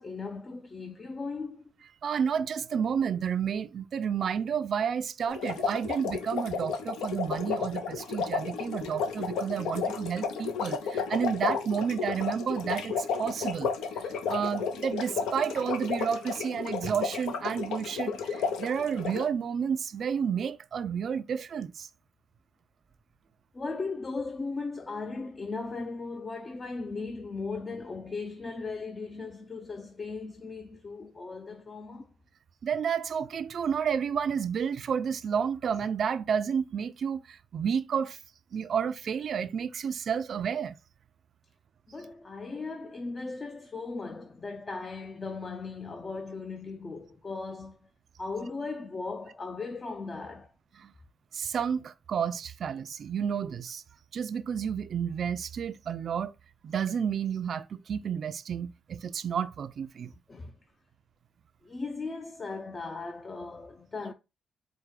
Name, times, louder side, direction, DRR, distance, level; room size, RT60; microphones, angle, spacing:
voice 1, 0.0-1.7 23.5-32.1 41.9-47.8 48.2-50.5 60.3-60.6 61.6-64.1, left 3 dB, 30° left, 0.5 m, -37 dB
voice 2, 2.0-13.7 14.3-21.9 32.6-38.2 38.5-40.7 50.8-50.9 51.3-53.8 54.1-56.3 56.6-60.1, right 7 dB, 55° right, 0.4 m, -31 dB
sound 1, 5.3-19.3, left 5 dB, 85° left, 0.6 m, -33 dB
4.7 x 2.2 x 4.7 m
cardioid pair, 90°, 0 cm